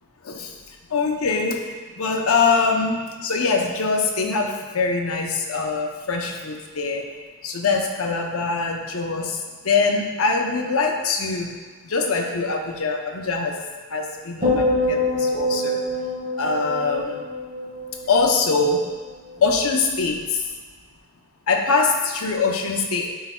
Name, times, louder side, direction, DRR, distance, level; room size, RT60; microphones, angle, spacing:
voice 1, 0.2-0.6 0.9-7.1 7.4-11.5 11.8-13.6 13.9-15.9 16.4-17.2 18.1-18.8 19.4-20.4 21.5-23.1, left 4 dB, 70° left, 3 dB, 0.7 m, -23 dB
sound 1, 14.4-18.8 19.1-19.5, left 1 dB, 30° right, 1.6 m, -25 dB
10.0 x 4.6 x 2.2 m, 1.4 s
head